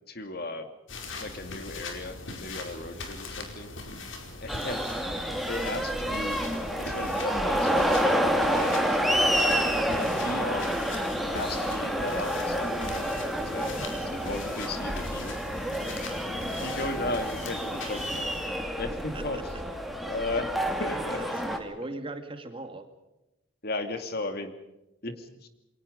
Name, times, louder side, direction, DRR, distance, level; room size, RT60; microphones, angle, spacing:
voice 1, 0.1-0.7 1.1-3.7 4.4-4.8 5.1-6.4 6.8-8.2 8.4-9.6 9.9-10.9 11.3-13.1 13.5-13.8 14.3-15.4 16.2-18.3 18.8-19.4 20.1-21.2 23.6-24.5 25.0-25.5, left 2 dB, 50° left, 8 dB, 2.4 m, -36 dB
sound 1, 0.9-18.5, left 3 dB, 70° left, 4.8 m, -41 dB
sound 2, 4.5-21.6, equal, ahead, 2.4 m, -29 dB
voice 2, 19.1-19.6 21.1-22.9, right 2 dB, 25° right, 7 dB, 2.2 m, -39 dB
28.5 x 23.0 x 5.3 m, 0.94 s
head